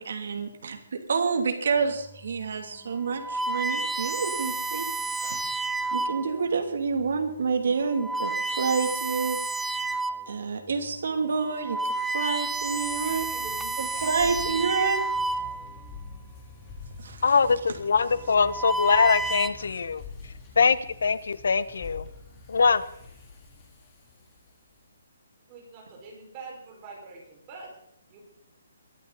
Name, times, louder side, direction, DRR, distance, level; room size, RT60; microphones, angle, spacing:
voice 1, 0.0-4.9 5.2-5.4 5.9-9.4 10.3-11.8 12.1-13.2 13.8-15.0 17.0-17.4 17.7-17.8, right 5 dB, 60° right, 4 dB, 2.7 m, -28 dB
sound 1, 2.1-2.4 3.0-6.4 7.1-7.3 7.9-10.3 10.8-10.9 11.4-15.9 16.9-17.3 18.2-19.5, right 3 dB, ahead, 0.5 m, -31 dB
sound 2, 11.4-24.8, left 4 dB, 15° left, 3.8 m, -47 dB
voice 2, 13.0-14.4 25.5-27.7 28.1-28.2, right 3 dB, 20° right, -1 dB, 5.1 m, -44 dB
voice 3, 17.2-20.0 20.6-22.1 22.5-22.8, left 5 dB, 65° left, 16 dB, 1.0 m, -22 dB
22.5 x 11.0 x 4.1 m, 0.76 s
hypercardioid pair, 175°, 0 cm